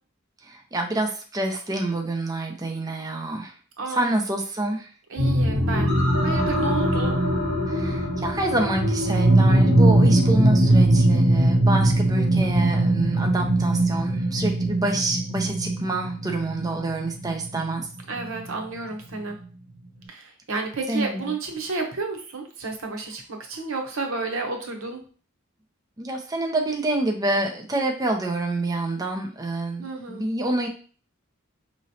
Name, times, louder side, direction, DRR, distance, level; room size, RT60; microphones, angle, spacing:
voice 1, 0.5-3.5 3.9-4.9 7.7-17.9 20.9-21.3 26.0-30.7, right 2 dB, 20° right, 2 dB, 0.6 m, -27 dB
voice 2, 3.8-4.1 5.1-5.9 6.2-7.2 18.1-19.4 20.1-25.0 29.8-30.2, right 3 dB, 90° right, 3 dB, 0.9 m, -31 dB
sound 1, 5.2-18.5 19.1-19.2, right 1 dB, 50° right, 2.0 m, -21 dB
5.1 x 3.1 x 2.8 m, 0.40 s
head